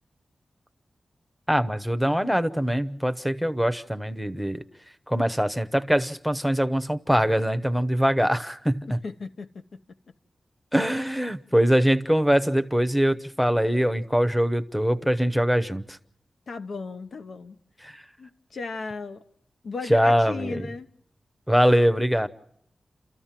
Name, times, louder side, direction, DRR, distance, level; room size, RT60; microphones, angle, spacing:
voice 1, 1.5-4.6 5.1-9.0 10.7-16.0 17.8-18.0 19.9-20.7 21.5-22.3, equal, ahead, 0.8 m, -23 dB
voice 2, 8.9-9.8 16.5-17.6 18.2-19.2 19.6-20.9, left 4 dB, 75° left, 0.8 m, -36 dB
29.0 x 14.0 x 7.4 m
wide cardioid pair, 110°, 0 cm